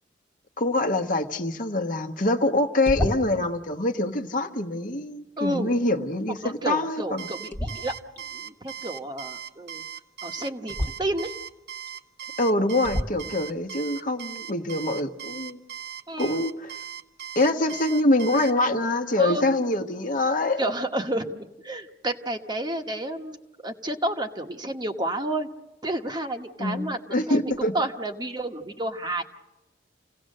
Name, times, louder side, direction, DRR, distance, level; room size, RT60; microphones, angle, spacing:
voice 1, 0.6-7.3 12.4-15.6 16.2-16.8 17.3-20.6 26.6-27.7, left 2 dB, 45° left, 6 dB, 1.1 m, -25 dB
sound 1, 2.8-3.5 7.5-8.2 10.7-10.9 11.9-12.0 12.8-13.3, left 1 dB, 10° left, 1.4 m, -29 dB
voice 2, 5.4-5.7 6.4-8.0 8.3-9.8 10.2-11.3 16.1-16.4 19.2-19.5 20.6-23.4 23.6-25.5 25.8-29.2, right 1 dB, 25° right, 5 dB, 1.2 m, -30 dB
Alarm, 7.2-18.5, right 9 dB, 60° right, 1.0 m, -38 dB
28.5 x 17.5 x 6.6 m, 1.0 s
head